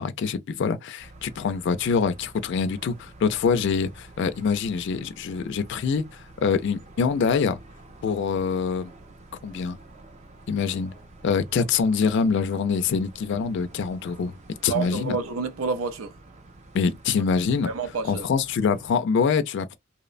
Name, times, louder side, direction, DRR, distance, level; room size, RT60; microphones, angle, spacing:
voice 1, 0.0-7.6 8.0-8.9 9.4-9.8 10.5-10.9 11.2-14.3 14.6-15.2 16.7-17.7 18.0-19.8, left 5 dB, 60° left, 0.3 m, -25 dB
sound 1, 1.0-19.0, right 2 dB, 35° right, 0.5 m, -49 dB
voice 2, 14.7-16.1 17.7-18.3, right 4 dB, 90° right, 0.5 m, -29 dB
2.8 x 2.0 x 2.4 m
head